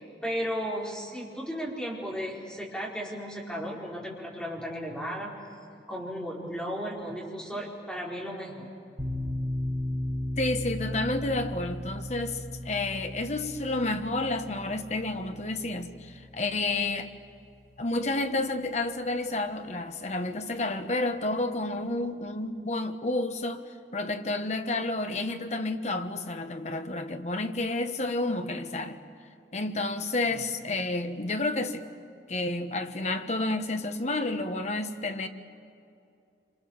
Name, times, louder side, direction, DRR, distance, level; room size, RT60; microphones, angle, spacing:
voice 1, 0.0-5.3 5.9-8.7 30.2-30.4, equal, 5° left, 4.7 m, -35 dB
sound 1, 9.0-17.9, left 1 dB, 25° right, 7.2 m, -36 dB
voice 2, 10.4-17.1 17.8-23.6 23.9-29.0 29.5-31.9 32.3-35.3, left 2 dB, 40° left, 1.3 m, -30 dB
27.5 x 26.5 x 7.3 m
head